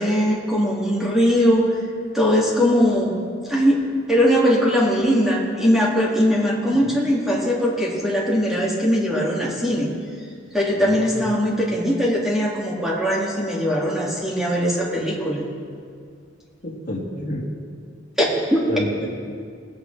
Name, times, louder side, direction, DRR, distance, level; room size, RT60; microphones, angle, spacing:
voice 1, 0.0-1.7 2.1-3.2 3.5-3.8 4.1-9.9 10.5-15.4 18.2-18.7, equal, ahead, -5 dB, 2.4 m, -20 dB
voice 2, 10.8-11.2 16.6-17.5 18.7-19.1, left 1 dB, 50° left, -3 dB, 2.2 m, -30 dB
20.0 x 8.6 x 3.4 m, 2.2 s
head